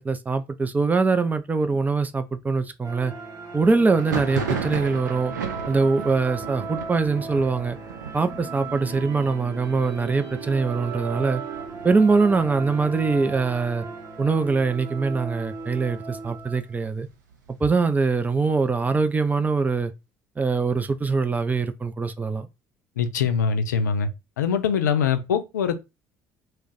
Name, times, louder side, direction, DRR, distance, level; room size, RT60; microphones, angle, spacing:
voice 1, 0.0-3.1 3.5-5.3 5.7-7.8 8.1-11.4 11.8-13.9 14.2-17.1 17.6-19.9 20.4-22.5, right 4 dB, 15° right, 0.4 m, -23 dB
sound 1, 2.8-16.7, right 5 dB, 35° right, 0.9 m, -37 dB
Thunder, 3.9-13.4 13.7-14.4 14.6-15.6 16.0-17.7, right 6 dB, 75° right, 0.5 m, -36 dB
voice 2, 23.0-24.1 24.4-25.8, left 6 dB, 75° left, 0.4 m, -23 dB
2.4 x 2.1 x 3.9 m
figure-of-eight pair, 55°, 10 cm